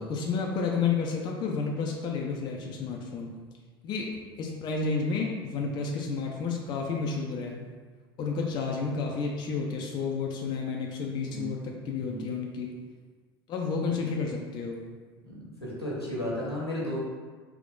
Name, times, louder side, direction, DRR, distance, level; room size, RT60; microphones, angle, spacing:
voice 1, 0.0-3.3 3.8-4.1 4.4-7.7 8.2-12.8 13.5-14.8, left 5 dB, 35° left, 0 dB, 0.5 m, -31 dB
voice 2, 15.2-17.0, left 1 dB, 90° left, -6 dB, 1.2 m, -34 dB
3.6 x 2.9 x 3.7 m, 1.4 s
figure-of-eight pair, 75°, 13 cm